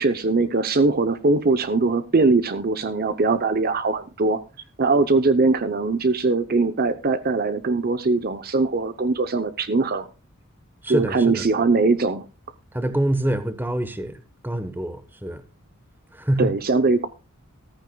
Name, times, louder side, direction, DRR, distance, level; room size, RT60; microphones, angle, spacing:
voice 1, 0.0-4.4 4.8-10.1 10.9-12.3 16.4-17.1, right 3 dB, 45° right, 0.7 m, -21 dB
voice 2, 10.8-11.4 12.7-15.4 16.1-16.5, right 1 dB, 10° right, 1.1 m, -25 dB
14.5 x 14.0 x 2.3 m
head